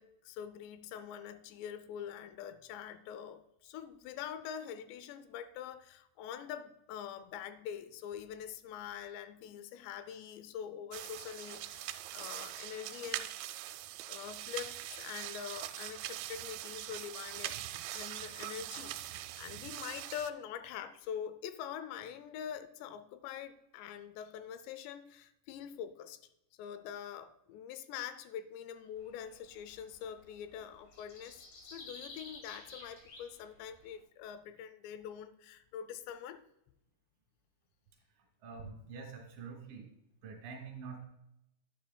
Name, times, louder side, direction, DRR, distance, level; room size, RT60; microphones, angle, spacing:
voice 1, 0.0-13.3 14.1-17.6 17.9-26.2 26.6-36.4, left 9 dB, 85° left, 2.8 m, -44 dB
sound 1, 10.9-20.3, right 14 dB, 90° right, 2.8 m, -42 dB
sound 2, 29.0-33.9, left 3 dB, 60° left, 4.0 m, -52 dB
voice 2, 38.1-39.9 40.2-41.0, right 5 dB, 65° right, 3.3 m, -46 dB
10.0 x 10.0 x 2.2 m
omnidirectional pair, 5.0 m